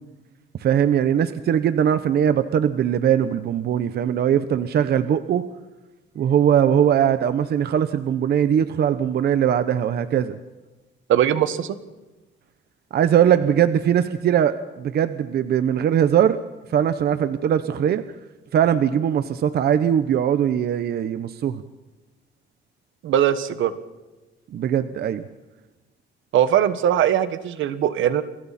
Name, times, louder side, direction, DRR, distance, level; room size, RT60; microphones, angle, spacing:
voice 1, 0.6-5.4 6.2-10.4 12.9-16.4 16.7-18.0 18.5-21.6 24.5-25.2, right 9 dB, 55° right, 12 dB, 1.0 m, -20 dB
voice 2, 11.1-11.8 23.0-23.7 26.3-28.2, right 10 dB, 80° right, 12 dB, 1.5 m, -20 dB
29.0 x 22.5 x 4.3 m, 1.1 s
cardioid pair, 160°, 20 cm